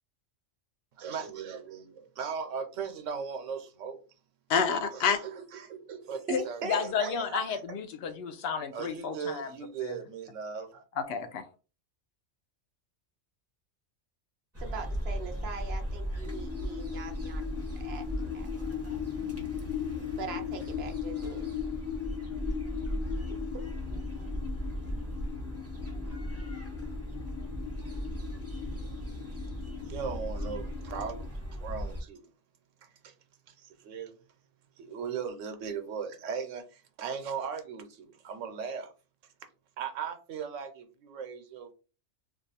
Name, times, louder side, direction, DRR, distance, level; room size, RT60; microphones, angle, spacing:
voice 1, 1.0-4.0 4.9-7.6 8.7-10.8 29.8-32.3 32.8-33.1 33.5-34.2 34.8-38.9 39.8-41.7, right 6 dB, 80° right, 1.0 m, -38 dB
voice 2, 4.5-5.2 6.3-6.4 6.7-9.5 9.8-9.9 11.0-11.4, left 6 dB, 65° left, 0.8 m, -30 dB
voice 3, 6.3-7.4 14.6-18.8 20.2-21.5, right 5 dB, 60° right, 0.8 m, -41 dB
sound 1, 14.5-32.0, equal, 15° right, 0.8 m, -37 dB
sound 2, 16.3-31.3, left 10 dB, 80° left, 1.0 m, -39 dB
2.6 x 2.4 x 4.0 m
omnidirectional pair, 1.3 m